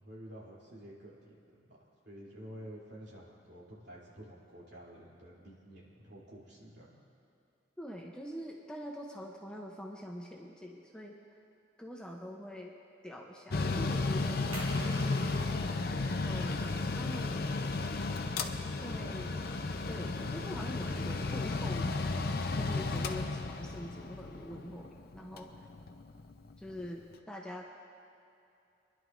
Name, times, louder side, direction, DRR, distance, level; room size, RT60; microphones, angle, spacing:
voice 1, 0.0-1.8 2.0-7.0, equal, 65° right, -6 dB, 3.1 m, -50 dB
voice 2, 7.8-11.2 11.8-12.7 13.0-14.5 14.8-15.5 16.2-17.5 18.8-19.4 19.9-25.5 26.6-27.7, equal, 5° left, -1 dB, 0.7 m, -44 dB
Mechanical fan, 13.5-26.9, left 3 dB, 55° left, 0.6 m, -34 dB
sound 1, 14.5-19.9, right 1 dB, 30° right, 1.9 m, -51 dB
25.0 x 11.0 x 2.6 m, 2.7 s
head